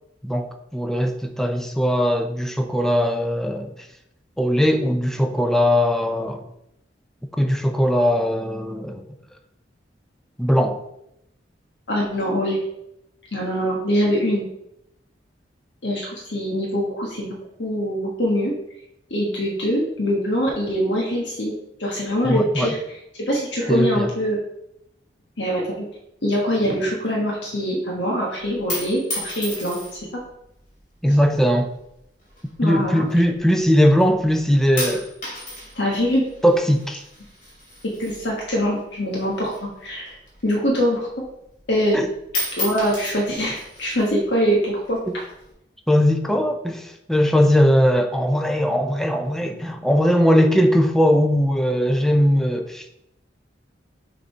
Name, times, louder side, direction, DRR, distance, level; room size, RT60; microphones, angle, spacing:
voice 1, 0.2-3.7 4.4-6.4 7.4-9.1 10.4-10.8 22.2-22.7 23.7-24.1 31.0-31.7 32.6-35.1 36.4-37.0 41.9-42.1 45.1-45.2 45.9-52.8, equal, ahead, 5 dB, 0.6 m, -19 dB
voice 2, 11.9-12.6 13.3-14.4 15.8-18.5 19.1-21.5 21.8-22.8 23.3-24.4 25.4-25.9 26.2-30.1 32.6-33.0 35.7-36.3 37.8-40.1 40.4-41.0 41.7-42.0 42.5-45.0, equal, 75° left, -3 dB, 1.5 m, -23 dB
sound 1, 28.4-30.2 31.0-31.4 32.3-33.6 34.0-34.4 34.8-38.8 39.1-40.8 41.2-41.3 41.6-42.0 42.2-44.1 44.8-45.5, left 1 dB, 50° left, 2.6 m, -33 dB
6.6 x 3.9 x 4.5 m, 0.81 s
head